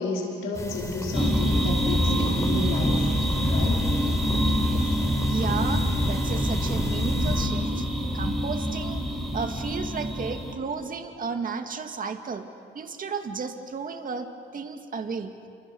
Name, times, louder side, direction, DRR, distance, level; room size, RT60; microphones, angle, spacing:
voice 1, 0.0-3.1 3.4-3.9, left 2 dB, 85° left, -2 dB, 4.8 m, -31 dB
sound 1, 0.5-7.5, left 1 dB, 15° left, 4.8 m, -33 dB
sound 2, 1.1-10.5, equal, ahead, 4.6 m, -25 dB
voice 2, 5.3-7.9 8.1-9.0 9.3-12.5 12.7-14.3 14.5-15.3, right 5 dB, 45° right, 6 dB, 2.1 m, -33 dB
28.0 x 25.5 x 7.0 m, 2.3 s
cardioid pair, 90°, 20 cm